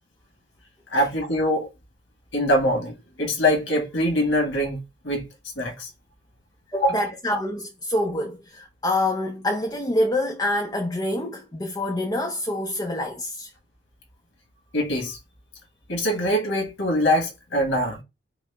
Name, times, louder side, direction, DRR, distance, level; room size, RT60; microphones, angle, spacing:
voice 1, 0.9-1.7 2.3-4.8 5.0-5.2 5.6-5.9 6.7-7.0 14.7-15.2 15.9-18.0, equal, 90° left, 1.5 m, -23 dB
voice 2, 6.7-13.5, left 1 dB, 20° left, 0.5 m, -26 dB
4.8 x 2.1 x 3.4 m
head